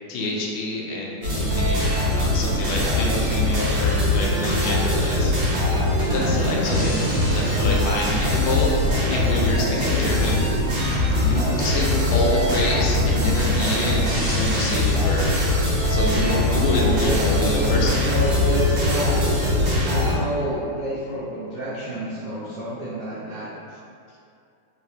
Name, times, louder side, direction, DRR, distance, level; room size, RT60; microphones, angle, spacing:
voice 1, 0.1-5.5 6.1-7.0 7.3-10.4 11.2-15.3 15.9-17.9, left 1 dB, 80° left, -3 dB, 1.2 m, -27 dB
sound 1, 1.2-20.1, left 1 dB, 65° right, 1.3 m, -21 dB
voice 2, 16.6-19.3 19.8-23.5, right 1 dB, 80° right, -10 dB, 0.6 m, -29 dB
3.8 x 2.1 x 2.6 m, 2.5 s
omnidirectional pair, 1.9 m